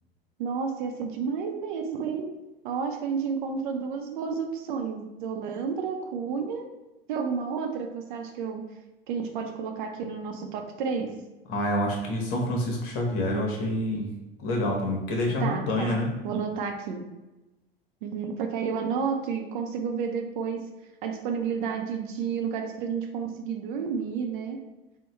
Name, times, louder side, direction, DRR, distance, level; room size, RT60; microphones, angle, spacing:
voice 1, 0.4-2.3 2.6-6.7 7.1-8.6 9.1-11.1 15.4-16.0 16.2-17.0 18.0-20.6 21.0-24.6, right 6 dB, 55° right, 4 dB, 0.6 m, -31 dB
voice 2, 11.5-14.1 14.4-16.1, left 1 dB, 45° left, 0 dB, 1.1 m, -27 dB
3.8 x 2.2 x 4.3 m, 1.0 s
figure-of-eight pair, 85°, 29 cm